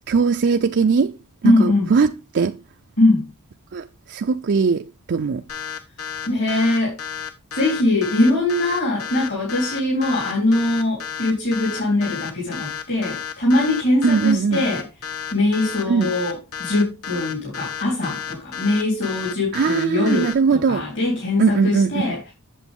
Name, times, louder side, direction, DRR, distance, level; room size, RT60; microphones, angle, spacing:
voice 1, 0.1-1.1 1.4-2.5 3.7-5.4 14.0-14.6 15.9-16.1 19.5-20.9 21.4-21.9, right 5 dB, 50° right, 0.4 m, -20 dB
voice 2, 1.4-1.9 3.0-3.2 6.3-7.0 7.5-14.9 15.3-22.3, left 2 dB, 55° left, 3.7 m, -21 dB
sound 1, 5.5-20.3, left 8 dB, 75° left, 1.4 m, -32 dB
8.3 x 7.5 x 3.6 m
head